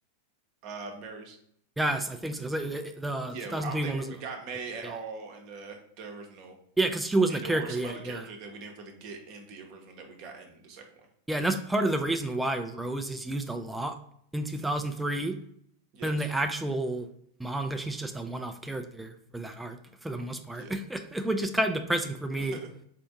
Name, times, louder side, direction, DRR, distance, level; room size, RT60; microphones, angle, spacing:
voice 1, 0.6-1.4 3.3-6.6 7.3-11.1 14.6-14.9 15.9-16.3 20.5-20.7 22.4-22.7, right 4 dB, 45° right, 3 dB, 0.8 m, -41 dB
voice 2, 1.8-4.0 6.8-8.2 11.3-14.0 14.3-15.4 16.0-17.1 17.4-22.6, right 2 dB, 5° right, 6 dB, 0.3 m, -30 dB
4.5 x 2.5 x 3.5 m, 0.67 s
figure-of-eight pair, 90°, 0 cm